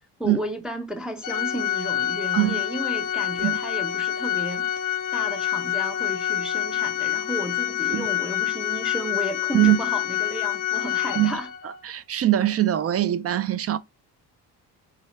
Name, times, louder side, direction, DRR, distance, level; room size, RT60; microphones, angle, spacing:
voice 1, 0.2-4.7 5.1-11.5, equal, ahead, 0.7 m, -33 dB
Organ, 1.2-11.8, left 11 dB, 50° left, 0.6 m, -27 dB
voice 2, 11.8-13.8, right 13 dB, 35° right, 0.4 m, -22 dB
4.1 x 2.5 x 3.2 m
supercardioid pair, 70°, 41 cm